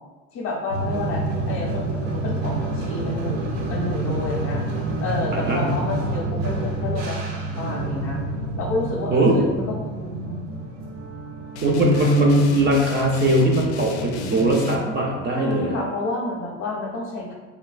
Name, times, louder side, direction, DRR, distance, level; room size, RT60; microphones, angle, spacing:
voice 1, 0.3-4.6 5.0-8.2 8.6-10.5 15.3-17.3, left 2 dB, 40° left, -1 dB, 0.6 m, -30 dB
sound 1, 0.7-14.8, right 2 dB, 75° right, 0.7 m, -29 dB
voice 2, 5.3-5.7 9.1-9.4 11.6-15.8, right 1 dB, 30° right, 0 dB, 0.5 m, -20 dB
sound 2, 11.5-14.8, left 3 dB, 80° left, 0.5 m, -34 dB
3.1 x 2.7 x 2.4 m, 1.3 s
supercardioid pair, 100°, 34 cm